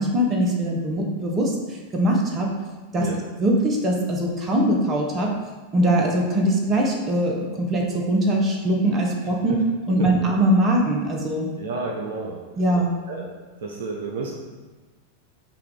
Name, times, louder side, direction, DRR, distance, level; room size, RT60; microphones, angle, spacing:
voice 1, 0.0-1.5 1.9-2.5 2.9-3.1 3.4-5.3 5.7-9.5 9.9-11.5 12.6-12.9, right 1 dB, 25° right, 0 dB, 0.8 m, -21 dB
voice 2, 9.2-9.6 10.0-10.1 11.6-12.5 13.1-13.3 13.6-14.3, right 3 dB, 60° right, -1 dB, 0.5 m, -31 dB
5.7 x 2.4 x 3.6 m, 1.3 s
figure-of-eight pair, 90°, 0 cm